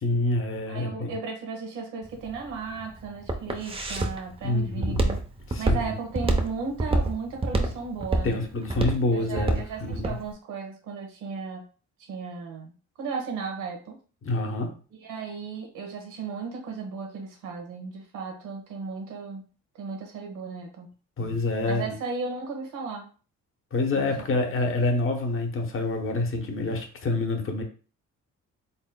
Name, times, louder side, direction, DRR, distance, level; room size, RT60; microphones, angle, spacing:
voice 1, 0.0-1.1 4.4-5.1 5.5-5.9 8.2-10.2 14.2-14.7 21.2-21.9 23.7-27.6, left 2 dB, 45° left, 4 dB, 1.0 m, -27 dB
voice 2, 0.7-5.2 5.6-8.4 9.1-11.6 12.0-12.7 13.0-14.0 14.9-19.4 19.7-20.9 21.7-23.1 23.9-24.1, right 5 dB, 90° right, 2 dB, 1.2 m, -35 dB
Walk footsteps, 2.0-10.2, right 2 dB, 20° right, 0.7 m, -26 dB
4.1 x 3.7 x 2.2 m, 0.37 s
cardioid pair, 90°, 30 cm